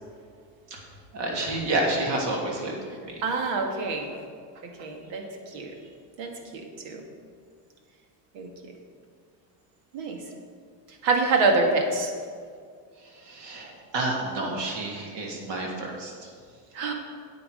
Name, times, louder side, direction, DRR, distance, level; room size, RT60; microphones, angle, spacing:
voice 1, 1.1-2.7 3.0-3.1 13.1-16.3, right 2 dB, 65° right, -1 dB, 2.7 m, -29 dB
voice 2, 3.2-4.2 4.6-5.7 6.2-7.0 8.3-8.5 9.9-10.2 11.0-12.1 16.7-16.9, right 3 dB, 85° right, 3 dB, 1.8 m, -26 dB
9.4 x 8.5 x 5.0 m, 2.1 s
cardioid pair, 125°, 46 cm